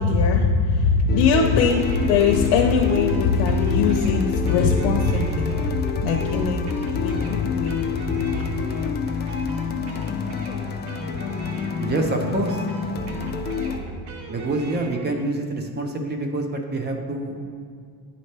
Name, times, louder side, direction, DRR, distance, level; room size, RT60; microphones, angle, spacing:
voice 1, 0.0-8.5, left 4 dB, 90° left, 0 dB, 0.7 m, -21 dB
sound 1, 1.1-13.8, left 5 dB, 25° left, 0.4 m, -28 dB
sound 2, 1.2-15.1, right 3 dB, 75° right, 1.0 m, -38 dB
voice 2, 11.8-12.7 14.3-17.4, right 2 dB, 25° right, 4 dB, 0.6 m, -26 dB
9.9 x 4.2 x 3.3 m, 2.2 s
cardioid pair, 145°, 40 cm